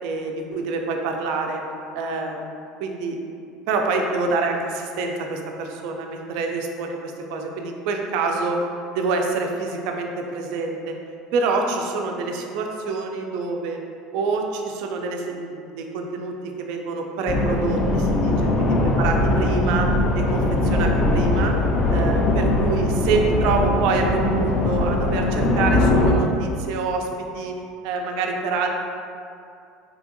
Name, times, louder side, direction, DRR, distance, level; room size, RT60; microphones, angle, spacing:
voice 1, 0.0-1.6 1.9-2.4 2.8-8.7 8.9-11.0 11.3-13.8 14.1-21.6 21.9-27.6 27.8-28.7, right 3 dB, 70° right, 2 dB, 0.3 m, -26 dB
sound 1, 17.3-26.1, left 1 dB, 40° left, 0.4 m, -21 dB
2.8 x 2.7 x 2.5 m, 2.5 s
supercardioid pair, 100°, 0 cm